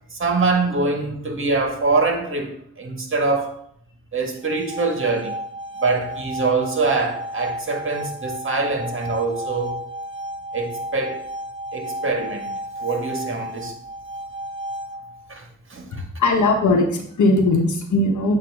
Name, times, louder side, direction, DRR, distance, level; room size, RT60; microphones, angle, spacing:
voice 1, 0.1-3.5 4.1-5.3 5.8-9.9 10.5-11.2 11.7-12.5 12.8-13.7 15.3-15.4 15.7-16.0, right 3 dB, 40° right, 1.7 m, -24 dB
sound 1, 4.4-15.3, right 1 dB, 15° right, 1.0 m, -33 dB
voice 2, 15.9-18.4, left 2 dB, 65° left, 1.2 m, -19 dB
8.4 x 2.9 x 4.8 m
cardioid pair, 60°, 31 cm